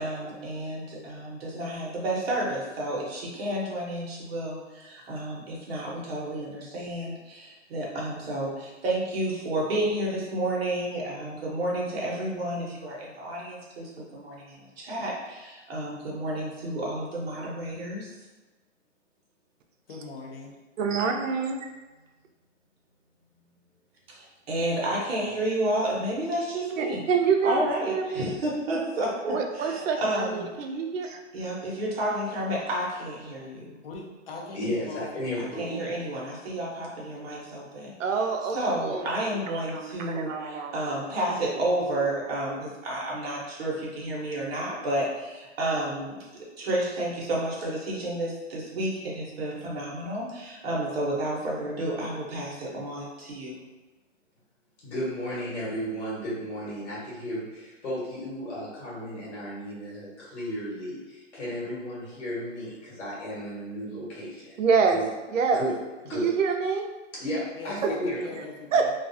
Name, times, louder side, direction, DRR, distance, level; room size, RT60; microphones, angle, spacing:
voice 1, 0.0-18.3 24.1-27.1 27.4-30.7 31.3-33.8 35.4-53.6, right 1 dB, 55° right, -4 dB, 0.9 m, -31 dB
voice 2, 19.9-20.5 33.8-35.6 67.6-68.9, left 3 dB, 50° left, -1 dB, 0.6 m, -40 dB
voice 3, 20.8-21.7 26.8-28.4 29.3-31.2 38.0-38.6 38.8-39.0 39.5-40.7 64.6-65.0 65.3-65.6 66.1-66.8 67.8-67.9 68.7-68.9, right 5 dB, 85° right, 4 dB, 0.5 m, -26 dB
voice 4, 34.5-35.8 54.8-64.6 64.9-65.1 65.5-65.7 66.0-66.3 67.2-68.2, equal, 65° left, -6 dB, 1.3 m, -34 dB
2.4 x 2.3 x 2.6 m, 1.2 s
hypercardioid pair, 165°, 37 cm